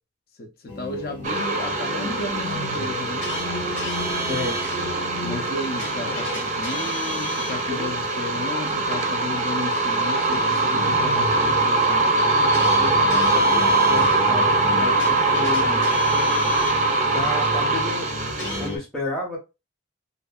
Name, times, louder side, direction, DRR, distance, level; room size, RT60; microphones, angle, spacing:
voice 1, 0.4-3.3 5.2-12.1 15.1-15.2, left 2 dB, 50° left, 0.5 m, -34 dB
sound 1, 0.7-18.8, left 1 dB, 70° left, 1.0 m, -33 dB
sound 2, 1.2-18.7, right 2 dB, 35° right, 0.5 m, -22 dB
voice 2, 4.3-4.6 7.7-7.9 12.8-14.5 14.8-15.9 17.1-18.1 18.6-19.4, left 2 dB, 5° left, 0.7 m, -31 dB
2.6 x 2.6 x 2.3 m
head